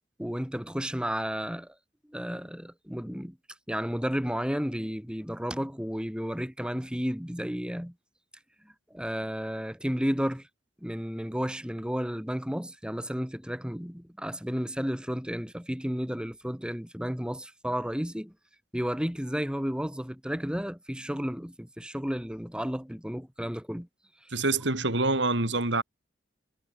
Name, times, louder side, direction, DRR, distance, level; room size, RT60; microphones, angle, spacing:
voice 1, 0.2-1.7 2.1-3.4 3.7-7.9 8.9-10.5 10.8-18.3 18.7-23.9 24.2-24.3, equal, 5° right, 2.4 m, -32 dB
voice 2, 24.3-25.8, right 2 dB, 65° right, 3.8 m, -26 dB
head